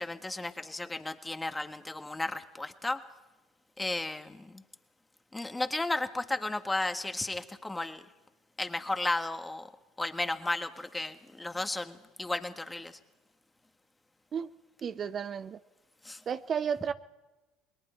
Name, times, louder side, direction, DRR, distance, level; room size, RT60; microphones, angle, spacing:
voice 1, 0.0-3.0 3.8-4.6 5.3-8.1 8.6-9.7 10.0-13.0 16.0-16.2, left 2 dB, 15° left, 8 dB, 1.6 m, -34 dB
voice 2, 14.8-15.6 16.3-16.9, right 7 dB, 40° right, 13 dB, 0.7 m, -32 dB
29.0 x 21.0 x 4.5 m, 1.1 s
hypercardioid pair, 70°, 0 cm